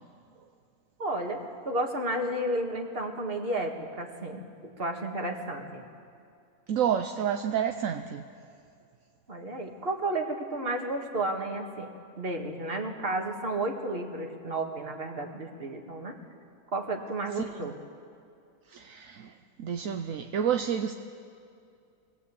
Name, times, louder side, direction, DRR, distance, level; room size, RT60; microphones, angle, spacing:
voice 1, 1.0-5.8 9.3-11.9 12.2-16.1 16.7-17.8, right 1 dB, 40° right, 3 dB, 2.2 m, -32 dB
voice 2, 6.7-8.2 17.4-17.5 18.7-19.3 19.6-20.9, right 8 dB, 70° right, 7 dB, 1.1 m, -29 dB
24.0 x 19.5 x 8.5 m, 2.4 s
omnidirectional pair, 1.5 m